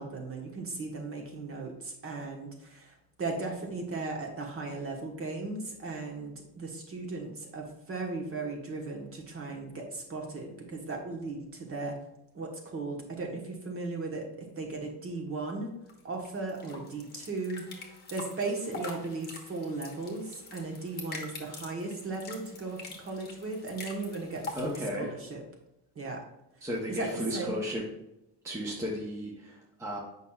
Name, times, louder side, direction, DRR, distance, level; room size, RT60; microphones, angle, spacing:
voice 1, 0.0-12.0 12.3-15.7 16.0-25.4 25.9-26.2 26.9-27.6, right 3 dB, 30° right, 1 dB, 1.2 m, -37 dB
sound 1, 15.9-24.8, left 3 dB, 25° left, 1.2 m, -44 dB
voice 2, 24.5-25.1 26.6-27.9 28.4-30.0, equal, 5° right, -3 dB, 0.8 m, -34 dB
8.2 x 5.6 x 2.3 m, 0.89 s
cardioid pair, 165°, 41 cm